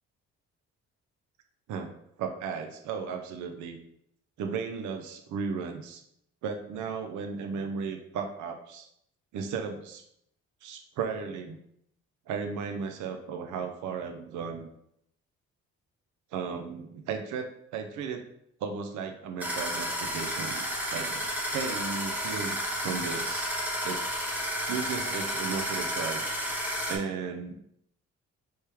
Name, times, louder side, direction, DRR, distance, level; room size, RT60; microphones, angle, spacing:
voice 1, 2.2-3.8 4.4-6.0 6.4-8.9 9.3-10.0 10.6-11.6 12.3-14.7 16.3-18.3 18.6-20.6 20.9-21.2 21.5-23.6 23.8-24.0 24.7-26.3 26.9-27.6, right 5 dB, 75° right, 5 dB, 0.6 m, -35 dB
sound 1, 19.4-27.0, equal, 5° right, 1.4 m, -32 dB
4.5 x 3.2 x 3.4 m, 0.74 s
cardioid pair, 90°, 30 cm